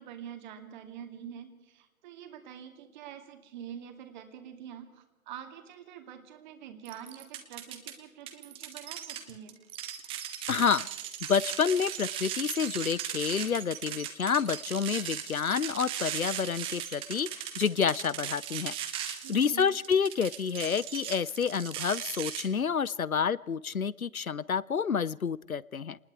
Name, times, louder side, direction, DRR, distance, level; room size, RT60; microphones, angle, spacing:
voice 1, 0.0-9.6 19.2-19.7, right 9 dB, 35° right, 6 dB, 2.4 m, -46 dB
sound 1, 6.9-7.9 8.3-22.4, right 10 dB, 15° right, 1.1 m, -38 dB
voice 2, 10.5-10.9 11.3-26.0, left 6 dB, 85° left, 23 dB, 0.6 m, -29 dB
28.0 x 20.0 x 4.7 m, 1.0 s
figure-of-eight pair, 125°, 41 cm